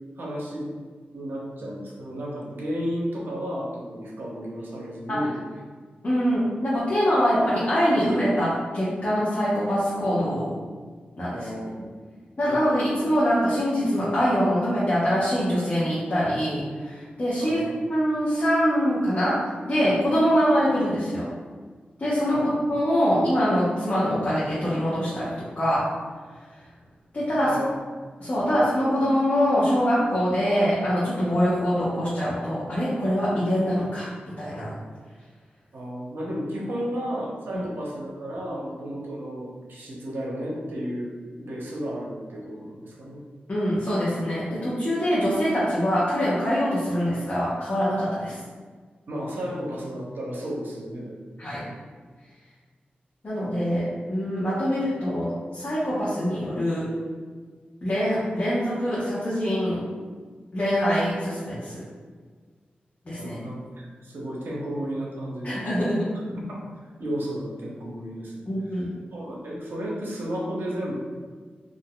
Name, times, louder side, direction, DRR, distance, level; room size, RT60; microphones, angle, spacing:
voice 1, 0.2-0.7 1.1-5.4 11.3-11.7 12.1-12.2 17.4-17.7 22.3-22.5 27.4-27.8 28.4-28.5 35.7-41.1 41.4-43.2 49.1-51.3 63.2-65.7 66.4-66.7 67.0-68.3 69.1-70.9, equal, 75° right, -3 dB, 0.8 m, -33 dB
voice 2, 6.0-10.5 11.2-11.5 12.4-17.6 17.9-21.3 22.0-25.9 27.1-27.5 28.2-34.1 34.4-34.7 37.5-37.6 43.5-48.4 51.4-51.7 53.2-56.9 57.8-59.8 60.5-61.8 63.1-63.4 65.4-66.1 68.5-68.9, equal, 45° left, -10 dB, 0.9 m, -24 dB
3.9 x 2.6 x 2.2 m, 1.5 s
cardioid pair, 65°, 4 cm